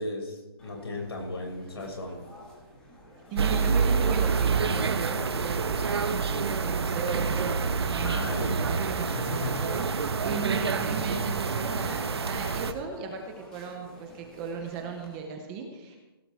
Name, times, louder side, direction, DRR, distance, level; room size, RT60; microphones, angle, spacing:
voice 1, 0.0-2.2 8.0-8.6 9.0-9.8, left 2 dB, 85° left, 0 dB, 5.8 m, -36 dB
sound 1, 0.6-15.2, left 1 dB, 5° left, 1.4 m, -50 dB
voice 2, 3.3-16.0, right 5 dB, 10° right, 3 dB, 0.6 m, -37 dB
sound 2, 3.4-12.7, right 5 dB, 90° right, 1.2 m, -27 dB
16.5 x 14.0 x 3.5 m, 1.1 s
hypercardioid pair, 180°, 13 cm